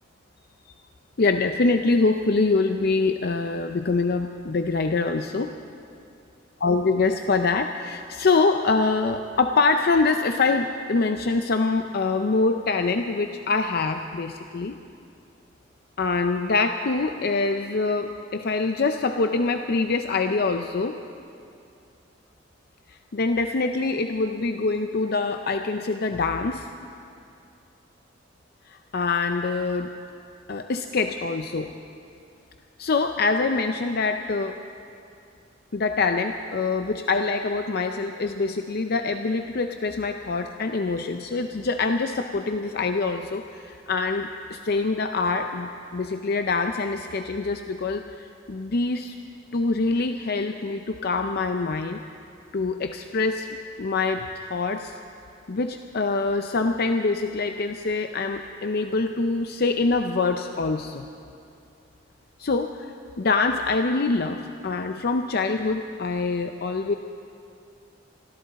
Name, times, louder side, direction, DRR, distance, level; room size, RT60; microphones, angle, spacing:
voice 1, 1.2-5.5 6.6-14.8 16.0-21.0 22.9-26.7 28.7-29.9 30.5-31.7 32.8-34.6 35.7-49.1 49.5-52.0 52.5-53.5 53.8-54.9 55.5-61.1 62.4-66.9, left 3 dB, 55° left, 6 dB, 0.5 m, -25 dB
25.0 x 13.5 x 4.1 m, 2.5 s
head